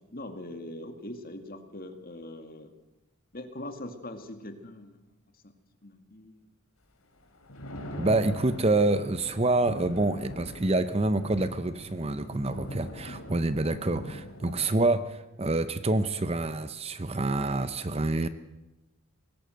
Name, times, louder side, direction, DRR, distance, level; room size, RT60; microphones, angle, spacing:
voice 1, 0.1-2.7 3.3-5.0 5.8-6.4 10.4-10.5 13.0-13.1, left 1 dB, 40° left, 6 dB, 2.2 m, -41 dB
Thunder, 7.2-15.0, equal, 85° left, 3.5 m, -42 dB
voice 2, 8.0-18.3, right 2 dB, 30° right, 12 dB, 0.7 m, -27 dB
21.0 x 17.5 x 7.9 m, 0.98 s
head